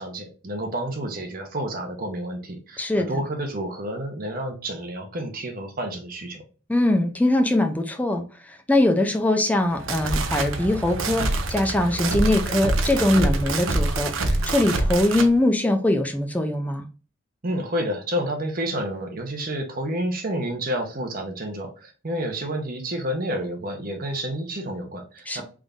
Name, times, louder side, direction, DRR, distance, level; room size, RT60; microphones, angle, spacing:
voice 1, 0.0-6.4 17.4-25.4, right 1 dB, 45° right, 0.9 m, -30 dB
voice 2, 2.8-3.2 6.7-8.2 8.7-14.1 14.5-16.8 25.3-25.4, left 1 dB, 10° left, 0.5 m, -22 dB
sound 1, 9.6-15.3, right 2 dB, 90° right, 0.6 m, -25 dB
3.5 x 2.6 x 3.4 m
head